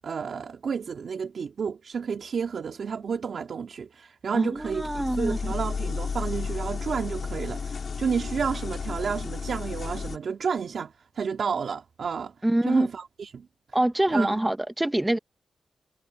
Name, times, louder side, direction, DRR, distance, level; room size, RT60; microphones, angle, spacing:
voice 1, 0.0-12.3 12.7-13.5 14.1-14.4, right 6 dB, 65° right, 2.3 m, -31 dB
voice 2, 4.3-5.4 12.4-12.9 13.7-15.2, right 1 dB, 10° right, 1.0 m, -25 dB
sound 1, 4.6-10.2, left 5 dB, 55° left, 3.1 m, -33 dB
wide cardioid pair, 110°, 0 cm